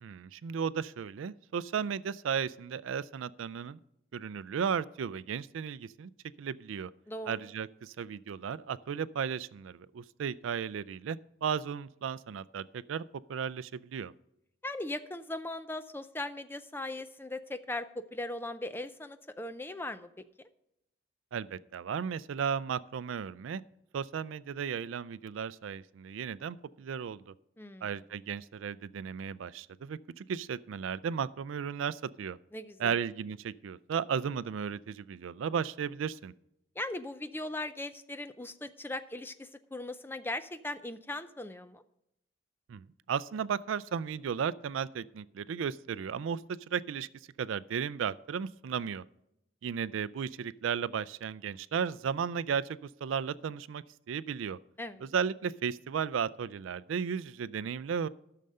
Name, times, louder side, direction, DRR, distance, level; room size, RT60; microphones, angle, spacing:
voice 1, 0.0-3.8 4.1-6.1 6.4-6.9 7.3-13.0 13.3-14.1 21.3-23.6 23.9-27.2 27.8-32.4 32.8-36.3 42.7-47.1 47.4-49.0 49.6-54.6 55.0-58.1, right 7 dB, 80° right, 18 dB, 0.4 m, -35 dB
voice 2, 7.1-7.5 14.6-20.1 27.6-27.9 32.5-33.0 36.8-41.8 54.8-55.1, left 2 dB, 10° left, 11 dB, 0.4 m, -39 dB
12.5 x 6.6 x 5.4 m, 0.82 s
head